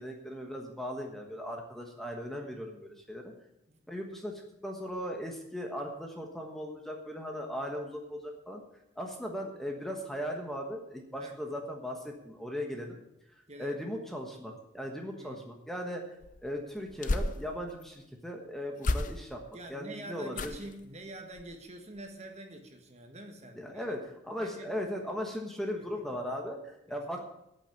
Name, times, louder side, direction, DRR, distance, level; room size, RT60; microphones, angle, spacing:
voice 1, 0.0-3.3 3.9-8.6 8.9-13.0 13.6-19.4 19.7-20.6 23.6-27.2, equal, ahead, 2 dB, 1.3 m, -38 dB
voice 2, 13.5-13.8 15.2-15.4 19.5-23.9 24.4-24.7 26.9-27.2, right 1 dB, 35° right, 4 dB, 1.5 m, -46 dB
sound 1, 16.2-17.9 18.8-19.5 20.3-20.8 21.3-21.6 22.0-22.1, left 2 dB, 40° left, 0.6 m, -34 dB
8.7 x 8.5 x 9.3 m, 0.86 s
head